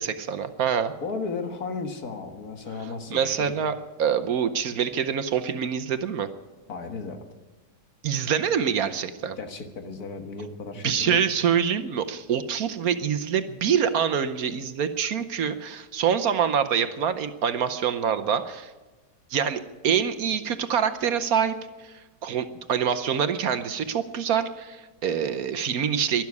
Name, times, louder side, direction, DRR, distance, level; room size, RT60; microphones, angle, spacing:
voice 1, 0.0-0.9 3.1-6.3 8.0-9.4 10.8-18.7 19.3-21.5 21.8-21.9 22.2-26.2, right 8 dB, 65° right, 10 dB, 1.2 m, -25 dB
voice 2, 1.0-3.5 6.7-7.2 9.4-11.2, left 4 dB, 60° left, 6 dB, 1.9 m, -34 dB
12.0 x 12.0 x 9.5 m, 1.2 s
omnidirectional pair, 1.8 m